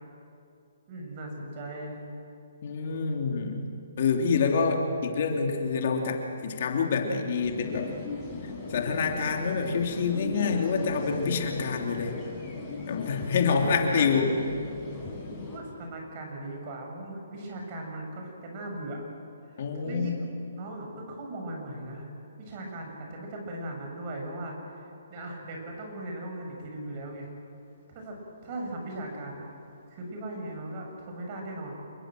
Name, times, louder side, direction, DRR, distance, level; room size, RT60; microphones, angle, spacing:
voice 1, 0.9-2.0 13.6-14.5 15.4-19.1 19.4-20.3 20.5-22.1 22.4-27.3 27.9-29.5 29.9-31.7, right 1 dB, 35° right, 1 dB, 7.1 m, -38 dB
voice 2, 2.6-3.7 4.0-7.9 8.7-12.2 12.9-14.3 19.6-20.2, left 5 dB, 50° left, 2 dB, 3.0 m, -27 dB
sound 1, 7.4-15.6, left 3 dB, 15° left, 7.5 m, -38 dB
27.0 x 22.5 x 7.7 m, 2.7 s
hypercardioid pair, 145°, 0 cm